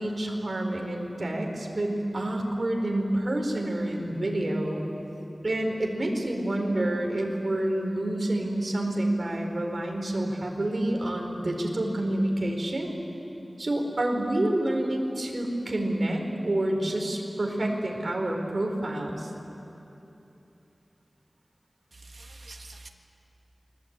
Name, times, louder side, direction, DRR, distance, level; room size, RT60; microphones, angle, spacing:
voice 1, 0.0-4.8 5.4-12.9 13.6-19.3, right 1 dB, 55° right, 1 dB, 4.6 m, -28 dB
voice 2, 21.9-22.9, right 2 dB, 75° right, 3 dB, 1.5 m, -45 dB
29.0 x 21.0 x 9.1 m, 3.0 s
wide cardioid pair, 70°, 0 cm